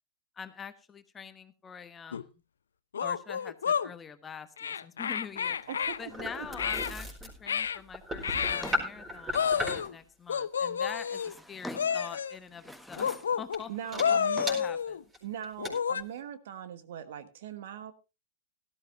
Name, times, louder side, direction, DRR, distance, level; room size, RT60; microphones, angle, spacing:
voice 1, 0.4-2.3 3.0-5.6 6.0-13.1 13.4-15.0, left 6 dB, 20° left, 10 dB, 1.2 m, -45 dB
sound 1, 2.1-2.2 2.9-3.9 4.6-6.0 6.6-6.9 7.5-7.8 8.2-8.8 9.3-9.9 10.3-11.3 11.7-12.4 13.0-13.6 14.0-15.0 15.6-16.0, left 7 dB, 70° left, 0.6 m, -30 dB
sound 2, 5.3-10.0 12.2-12.4 12.9-13.1 13.5-13.6 13.9-14.0 14.5-14.6 15.1-15.2 15.4-15.7, left 1 dB, 15° right, 4.5 m, -36 dB
voice 2, 5.7-6.5 13.7-14.4 15.2-17.9, right 9 dB, 55° right, 12 dB, 1.4 m, -41 dB
Drawer open or close, 8.2-10.0 10.8-12.1 12.5-13.4 13.7-14.8, equal, ahead, 1.0 m, -47 dB
17.0 x 13.0 x 2.6 m, 0.27 s
figure-of-eight pair, 100°, 0 cm